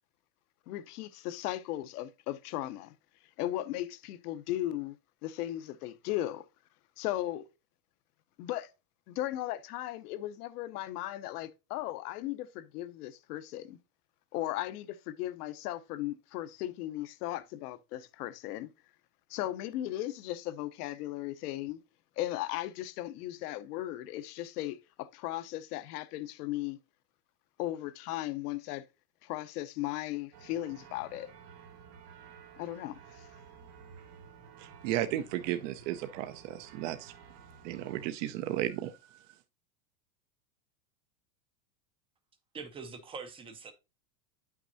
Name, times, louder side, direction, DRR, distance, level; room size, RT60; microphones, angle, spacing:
voice 1, 0.7-2.9 3.4-5.0 5.2-6.4 7.0-7.4 8.4-8.7 9.1-13.8 14.3-18.7 19.3-21.8 22.2-26.8 27.6-28.8 29.2-31.3 32.6-33.3, left 14 dB, 65° left, 0.9 m, -36 dB
sound 1, 30.3-38.1, right 6 dB, 65° right, 1.6 m, -53 dB
voice 2, 34.6-37.1 37.6-39.2, right 13 dB, 50° right, 0.7 m, -34 dB
voice 3, 42.5-43.7, right 5 dB, 10° right, 0.5 m, -43 dB
9.1 x 6.0 x 2.6 m
supercardioid pair, 150°, 50 cm